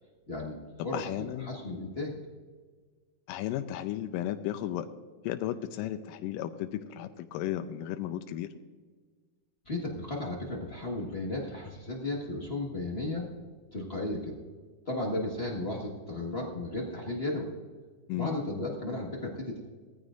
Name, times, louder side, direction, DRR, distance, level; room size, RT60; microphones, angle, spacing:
voice 1, 0.3-0.6 0.8-1.1 1.4-2.2 9.6-13.3 13.7-14.3 14.8-17.5 18.1-19.6, left 2 dB, 55° left, -2 dB, 0.6 m, -34 dB
voice 2, 0.8-1.5 3.3-4.9 5.2-8.5 18.1-18.4, left 12 dB, 90° left, 8 dB, 2.2 m, -34 dB
19.0 x 14.5 x 2.5 m, 1.5 s
omnidirectional pair, 3.8 m